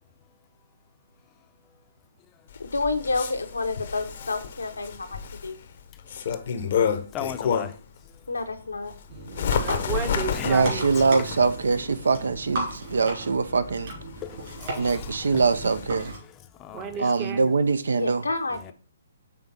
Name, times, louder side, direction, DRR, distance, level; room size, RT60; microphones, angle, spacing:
Bird, 2.5-7.9 8.4-16.0, left 7 dB, 55° left, 0.8 m, -31 dB
voice 1, 2.6-5.6 8.3-8.9 17.9-18.7, left 3 dB, 85° left, 1.0 m, -29 dB
voice 2, 7.1-7.7 10.3-10.6 14.2-15.4 16.2-16.3 16.6-17.1 18.7-18.8, left 10 dB, 25° left, 0.6 m, -37 dB
sound 1, 9.1-16.2, right 2 dB, 50° right, 3.1 m, -36 dB
voice 3, 9.3-11.1 16.7-17.5, right 7 dB, 25° right, 0.9 m, -34 dB
voice 4, 10.4-13.9 14.8-16.1 17.0-18.2, right 4 dB, 70° right, 0.6 m, -23 dB
5.9 x 3.5 x 5.4 m
figure-of-eight pair, 135°, 0 cm